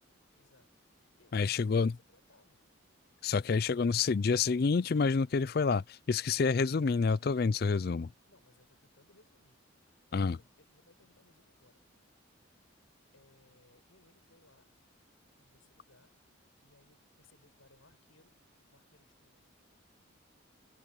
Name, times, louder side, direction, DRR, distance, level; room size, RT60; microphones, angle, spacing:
voice 1, 0.3-0.7 0.9-2.6 8.3-9.6 10.6-11.8 13.1-14.7 15.4-16.1 16.6-19.4, left 2 dB, 75° left, 7.2 m, -66 dB
voice 2, 1.3-1.9 3.2-8.1 10.1-10.4, left 4 dB, 45° left, 0.4 m, -28 dB
head